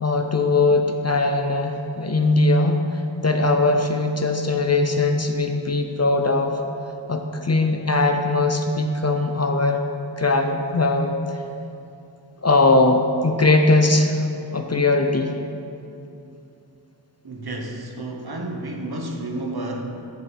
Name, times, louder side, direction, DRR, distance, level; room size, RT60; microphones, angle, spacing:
voice 1, 0.0-2.8 3.2-6.6 7.1-9.8 10.2-11.2 12.4-14.2 14.5-15.3, left 2 dB, 35° left, 4 dB, 0.6 m, -20 dB
voice 2, 17.2-19.8, right 1 dB, 55° right, 1 dB, 1.1 m, -31 dB
10.5 x 4.5 x 5.0 m, 2.7 s
wide cardioid pair, 50°, 44 cm